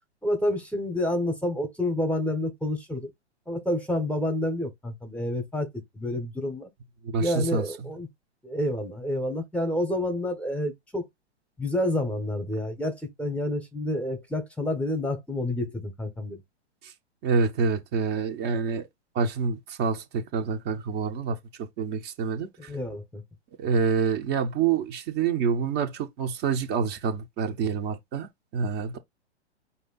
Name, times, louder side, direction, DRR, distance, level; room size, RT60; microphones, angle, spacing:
voice 1, 0.2-3.1 3.5-5.7 5.9-6.7 7.2-8.1 8.4-11.0 11.6-16.4 22.6-23.2, left 1 dB, 5° left, 0.9 m, -29 dB
voice 2, 7.0-7.7 16.8-16.9 17.2-18.9 19.1-22.7 23.6-29.0, right 5 dB, 30° right, 0.8 m, -27 dB
5.0 x 2.7 x 3.9 m
figure-of-eight pair, 120°, 34 cm